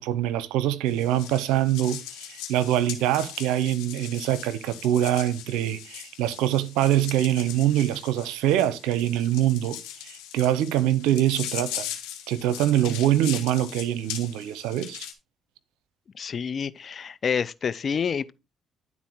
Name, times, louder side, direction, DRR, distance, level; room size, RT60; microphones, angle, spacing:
voice 1, 0.0-9.8 10.0-11.8 12.3-15.1, right 12 dB, 85° right, 0.6 m, -24 dB
sound 1, 0.9-15.1, left 11 dB, 90° left, 1.7 m, -39 dB
voice 2, 16.1-18.3, left 6 dB, 50° left, 0.6 m, -28 dB
11.0 x 4.1 x 4.5 m
supercardioid pair, 60°, 0 cm